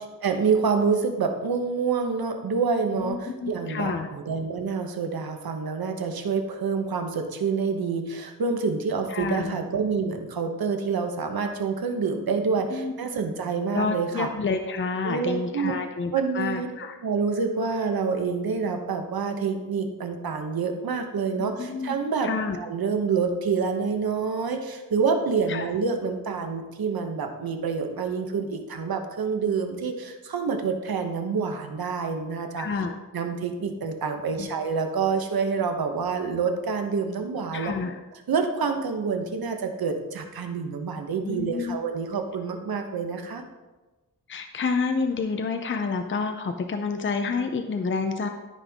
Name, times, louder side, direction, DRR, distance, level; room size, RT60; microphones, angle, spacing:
voice 1, 0.0-14.3 15.0-15.8 16.1-16.7 17.0-32.7 33.1-37.7 38.3-43.4, right 5 dB, 85° right, 5 dB, 1.1 m, -27 dB
voice 2, 2.9-4.1 9.1-9.6 12.7-12.9 13.7-17.0 21.4-22.0 22.2-22.6 25.5-25.7 32.6-32.9 34.4-34.5 37.5-38.0 41.2-41.8 44.3-48.3, left 4 dB, 35° left, 6 dB, 0.5 m, -29 dB
13.0 x 5.5 x 3.6 m, 1.2 s
wide cardioid pair, 150°, 35 cm